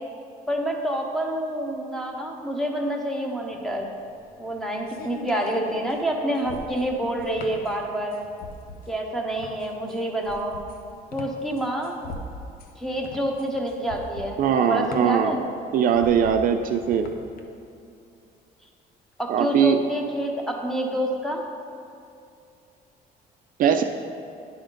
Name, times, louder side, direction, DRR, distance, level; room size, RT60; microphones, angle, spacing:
voice 1, 0.5-3.9 4.4-8.2 8.9-10.6 11.1-11.9 12.8-15.4 19.2-21.4, right 1 dB, ahead, 1 dB, 0.9 m, -28 dB
sound 1, 3.5-17.4, left 3 dB, 60° left, 0.7 m, -41 dB
voice 2, 14.4-15.3 15.7-17.1 19.3-19.8 23.6-23.8, right 8 dB, 55° right, 6 dB, 0.4 m, -20 dB
10.0 x 3.5 x 5.2 m, 2.6 s
cardioid pair, 110°, 17 cm